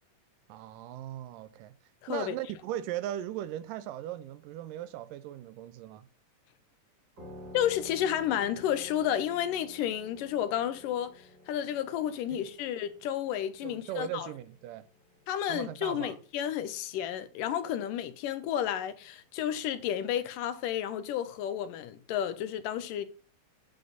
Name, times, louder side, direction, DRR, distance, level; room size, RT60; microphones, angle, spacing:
voice 1, 0.5-1.7 2.1-6.1 12.4-12.5 13.6-14.9 15.5-16.2, right 12 dB, 80° right, 2.3 m, -38 dB
sound 1, 7.2-16.4, left 1 dB, 30° right, 3.6 m, -52 dB
voice 2, 7.5-11.1 11.5-14.3 15.3-23.0, left 10 dB, 80° left, 2.4 m, -31 dB
9.3 x 6.8 x 3.9 m
omnidirectional pair, 3.9 m